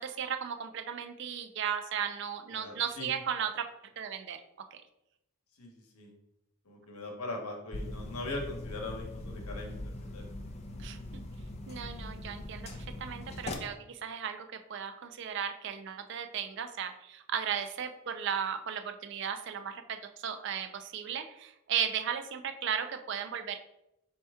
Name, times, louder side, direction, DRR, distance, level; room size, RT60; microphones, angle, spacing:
voice 1, 0.0-3.7 4.0-4.4 4.7-4.8 10.8-11.2 11.7-23.6, right 8 dB, 50° right, 7 dB, 0.3 m, -36 dB
voice 2, 2.5-3.1 5.6-6.1 6.6-10.5, left 2 dB, 85° left, 1 dB, 0.9 m, -41 dB
sound 1, 7.7-13.5, left 1 dB, 30° left, 0.3 m, -41 dB
4.3 x 2.8 x 3.4 m, 0.86 s
head